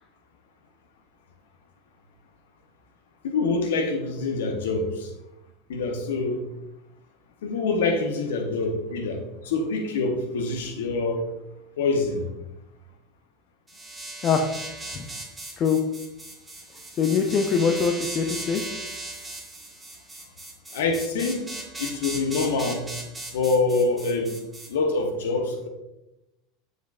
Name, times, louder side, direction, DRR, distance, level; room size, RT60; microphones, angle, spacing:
voice 1, 3.2-5.1 5.7-6.4 7.4-11.2 11.8-12.3 20.7-21.5 21.8-22.8 23.3-24.3 24.7-25.7, left 3 dB, 70° left, 4 dB, 1.0 m, -25 dB
sound 1, 13.7-24.7, right 2 dB, 10° right, 1.8 m, -37 dB
voice 2, 17.0-18.6, left 6 dB, 40° left, 4 dB, 0.6 m, -23 dB
7.2 x 6.5 x 2.4 m, 0.92 s
hypercardioid pair, 80°, 0 cm